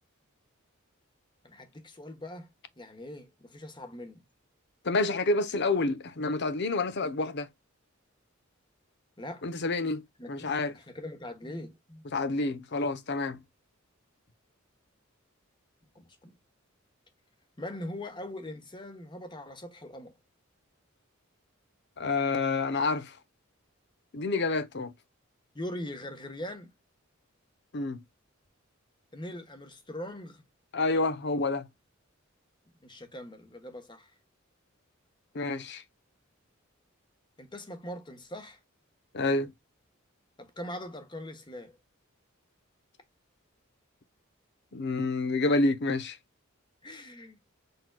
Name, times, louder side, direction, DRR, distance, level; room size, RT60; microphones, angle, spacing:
voice 1, 1.4-2.5 2.8-4.2 9.2-9.5 10.2-12.0 15.9-16.4 17.6-20.1 25.5-26.7 29.1-30.4 32.8-34.1 37.4-38.6 40.4-41.8 46.8-47.4, left 1 dB, 25° left, 1.2 m, -41 dB
voice 2, 4.8-7.5 9.4-10.7 12.1-13.4 22.0-23.2 24.1-24.9 27.7-28.0 30.7-31.7 35.3-35.8 39.1-39.5 44.7-46.2, left 3 dB, 55° left, 0.8 m, -28 dB
6.0 x 3.9 x 2.2 m
head